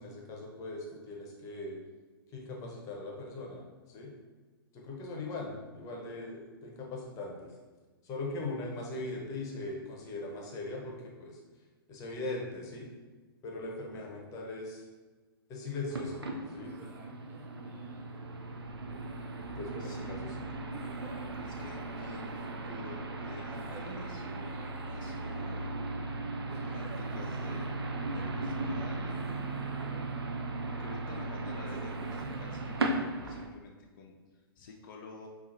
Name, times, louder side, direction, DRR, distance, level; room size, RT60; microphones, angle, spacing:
voice 1, 0.0-1.8 2.3-4.1 4.7-7.5 8.0-11.4 11.9-12.9 13.4-14.8 15.5-16.2 16.5-16.7 19.6-20.3, left 2 dB, 25° left, -1 dB, 0.7 m, -40 dB
sound 1, 15.9-33.5, right 2 dB, 90° right, 0.4 m, -37 dB
sound 2, 16.6-18.2 18.9-19.8 20.7-22.9 23.5-25.4 26.5-28.3 29.1-30.7 31.6-33.6, right 4 dB, 20° right, 0.4 m, -53 dB
voice 2, 19.8-20.2 21.3-24.3 24.8-29.3 30.6-35.3, left 4 dB, 55° left, 0 dB, 0.4 m, -50 dB
3.9 x 2.4 x 2.6 m, 1.3 s
figure-of-eight pair, 115°, 13 cm